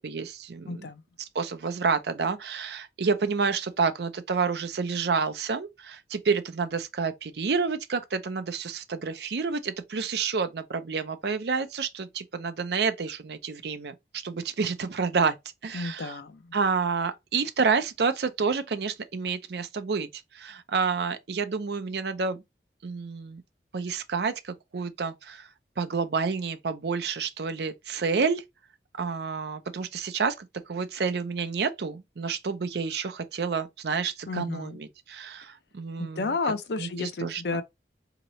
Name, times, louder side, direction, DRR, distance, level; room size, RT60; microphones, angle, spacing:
voice 1, 0.0-0.9 1.2-15.4 15.6-16.2 16.5-22.4 22.8-23.4 23.7-25.5 25.8-28.4 29.0-36.3 36.8-37.6, right 5 dB, 70° right, 0.5 m, -29 dB
voice 2, 0.7-1.0 15.7-16.4 34.3-34.8 36.0-37.6, left 3 dB, 70° left, 0.5 m, -31 dB
3.9 x 2.9 x 3.0 m
head